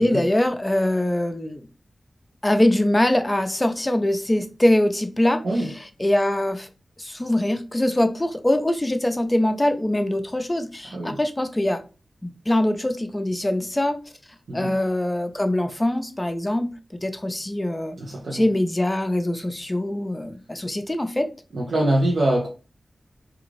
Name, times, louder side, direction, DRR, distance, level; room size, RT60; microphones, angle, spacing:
voice 1, 0.0-1.6 2.4-5.4 6.0-6.7 7.0-11.8 12.2-14.0 14.5-18.0 18.3-21.3, left 1 dB, 20° left, 0.4 m, -23 dB
voice 2, 14.5-14.8 18.0-18.4 21.5-22.5, right 1 dB, 85° right, 0.6 m, -24 dB
2.4 x 2.4 x 3.1 m
wide cardioid pair, 70°, 0 cm